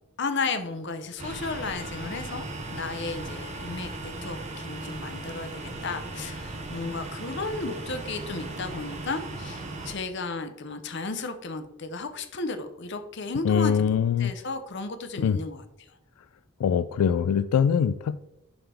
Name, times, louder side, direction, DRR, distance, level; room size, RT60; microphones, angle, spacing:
voice 1, 0.2-15.6, left 3 dB, 50° left, 8 dB, 0.7 m, -34 dB
sound 1, 1.2-10.0, right 2 dB, 30° right, 0.9 m, -37 dB
voice 2, 13.4-14.3 15.2-15.4 16.6-18.2, left 7 dB, 90° left, 12 dB, 0.3 m, -23 dB
11.0 x 3.8 x 3.4 m, 0.88 s
head